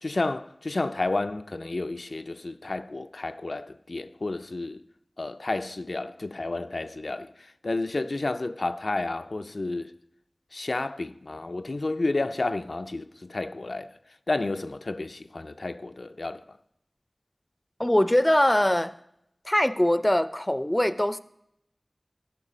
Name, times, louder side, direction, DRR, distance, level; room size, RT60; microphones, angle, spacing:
voice 1, 0.0-4.8 5.2-9.9 10.5-13.9 14.3-16.4, left 2 dB, 85° left, 0.3 m, -31 dB
voice 2, 17.8-18.9 19.5-21.2, left 1 dB, 20° left, 0.4 m, -22 dB
15.0 x 5.5 x 4.9 m
wide cardioid pair, 40°, 0 cm